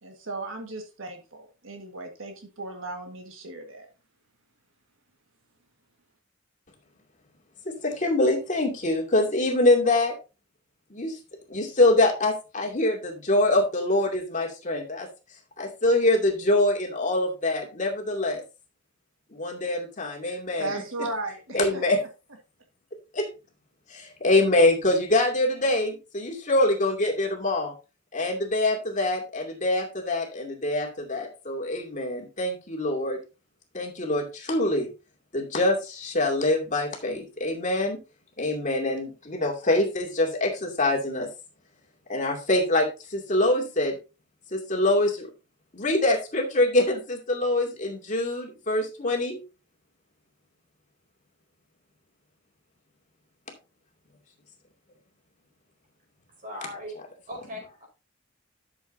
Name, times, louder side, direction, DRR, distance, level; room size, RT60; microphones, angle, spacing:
voice 1, 0.0-3.9 20.2-21.8, right 2 dB, 65° right, 3 dB, 1.7 m, -36 dB
voice 2, 7.6-10.1 10.9-11.2 11.5-15.1 15.6-18.4 19.3-20.7 21.5-22.0 23.1-23.3 23.9-27.7 28.1-33.2 33.7-34.9 35.3-38.0 38.4-41.3 42.1-43.9 44.5-45.3 45.7-49.4, left 2 dB, 35° left, 0 dB, 2.5 m, -24 dB
voice 3, 56.4-57.0 57.3-57.9, equal, 40° right, 0 dB, 4.7 m, -38 dB
12.5 x 7.0 x 2.7 m, 0.30 s
head